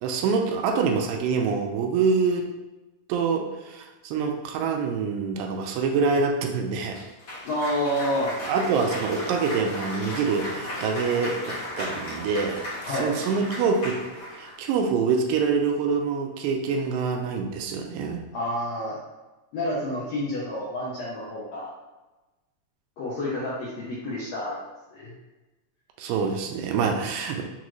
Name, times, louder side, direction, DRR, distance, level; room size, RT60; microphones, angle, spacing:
voice 1, 0.0-2.5 3.1-7.0 8.5-12.6 12.9-14.0 14.4-18.2 26.0-27.4, right 5 dB, 80° right, 2 dB, 2.2 m, -25 dB
Cheering / Applause, 6.9-14.6, left 1 dB, 60° left, 1.3 m, -35 dB
voice 2, 7.4-8.3 12.8-13.1 18.3-19.0 19.5-21.7 23.0-24.6 24.9-25.1, left 1 dB, 75° left, -7 dB, 1.6 m, -29 dB
6.1 x 2.5 x 3.0 m, 1.1 s
omnidirectional pair, 4.0 m